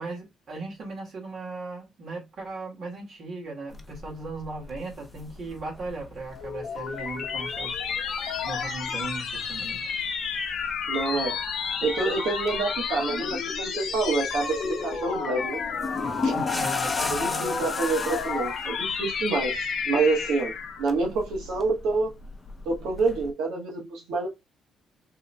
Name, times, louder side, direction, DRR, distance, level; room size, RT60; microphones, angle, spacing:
voice 1, 0.0-7.8 8.4-10.0 16.0-17.7, right 3 dB, 55° right, 1.9 m, -37 dB
sound 1, 3.7-23.3, left 3 dB, 25° left, 0.6 m, -39 dB
sound 2, 6.2-20.9, left 6 dB, 65° left, 0.8 m, -31 dB
voice 2, 10.9-11.4 11.8-15.6 16.2-16.4 17.1-19.6 19.8-20.5 20.8-22.2 22.6-24.3, right 3 dB, 90° right, 1.1 m, -27 dB
3.5 x 3.0 x 2.2 m
cardioid pair, 90°, 0 cm